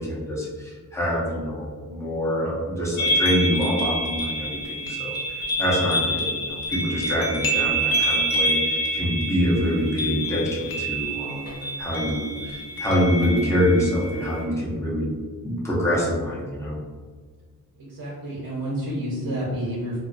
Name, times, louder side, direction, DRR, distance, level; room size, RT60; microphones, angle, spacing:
voice 1, 0.0-15.1 15.4-16.8, equal, 10° left, -6 dB, 0.6 m, -25 dB
sound 1, 3.0-14.4, right 1 dB, 70° left, 0.6 m, -27 dB
voice 2, 17.8-20.0, equal, 75° right, -6 dB, 0.7 m, -29 dB
2.3 x 2.2 x 2.4 m, 1.5 s
wide cardioid pair, 140°, 36 cm